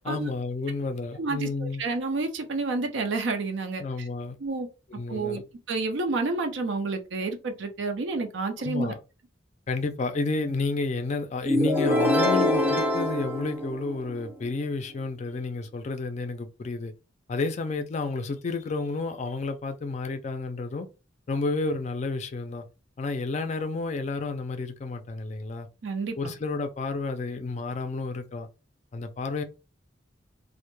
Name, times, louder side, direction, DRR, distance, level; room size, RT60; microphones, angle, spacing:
voice 1, 0.0-1.8 3.8-4.4 4.9-5.4 8.6-9.0 9.7-16.9 17.3-20.9 21.3-22.6 23.0-25.7 26.2-28.5 28.9-29.4, left 3 dB, 35° left, 0.3 m, -31 dB
voice 2, 1.2-3.8 4.4-4.7 5.1-5.4 5.7-8.9 25.8-26.3, right 3 dB, 75° right, 0.5 m, -29 dB
sound 1, 11.5-14.3, left 1 dB, 10° right, 0.6 m, -24 dB
2.1 x 2.0 x 3.0 m
head